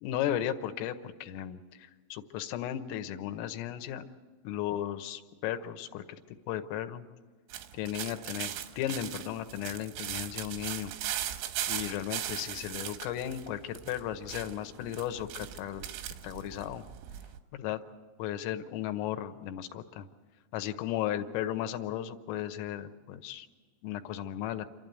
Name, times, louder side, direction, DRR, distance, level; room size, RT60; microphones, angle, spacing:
voice 1, 0.0-4.1 4.5-6.1 6.5-7.0 7.8-10.9 11.7-15.8 16.2-16.9 17.5-17.8 18.2-20.1 20.5-23.5 23.8-24.7, left 11 dB, 80° left, 8 dB, 3.4 m, -35 dB
sound 1, 7.5-17.4, right 11 dB, 90° right, 3.8 m, -39 dB
28.0 x 12.0 x 9.2 m, 1.4 s
omnidirectional pair, 6.0 m